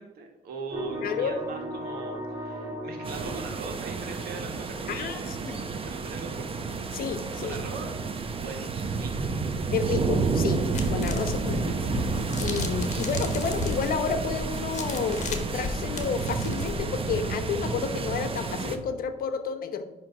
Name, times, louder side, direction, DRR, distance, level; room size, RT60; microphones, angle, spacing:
voice 1, 0.0-6.5 7.4-7.9 8.4-9.3, right 4 dB, 75° right, 3 dB, 1.7 m, -40 dB
sound 1, 0.7-4.6, equal, 10° right, 2.9 m, -37 dB
voice 2, 1.0-1.3 4.9-5.6 6.9-7.6 9.7-10.6 10.9-11.9 12.4-19.8, left 6 dB, 65° left, 9 dB, 0.9 m, -30 dB
sound 2, 3.0-18.8, right 4 dB, 35° right, 0.9 m, -30 dB
sound 3, 10.7-16.9, left 4 dB, 50° left, 1.4 m, -36 dB
9.8 x 3.4 x 6.0 m, 1.0 s
cardioid pair, 85°, 16 cm